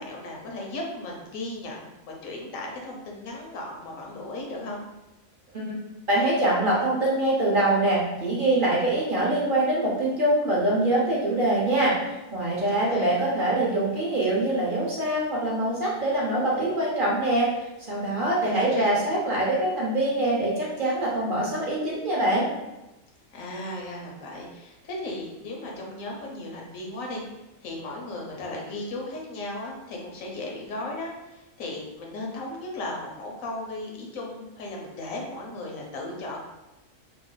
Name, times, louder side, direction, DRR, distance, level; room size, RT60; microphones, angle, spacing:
voice 1, 0.0-4.8 12.7-13.2 18.1-19.0 23.3-27.2 27.6-36.4, left 2 dB, 85° left, -1 dB, 1.1 m, -36 dB
voice 2, 6.1-17.5 17.9-22.5, right 1 dB, 45° right, -5 dB, 0.8 m, -24 dB
2.9 x 2.0 x 3.8 m, 0.99 s
omnidirectional pair, 1.4 m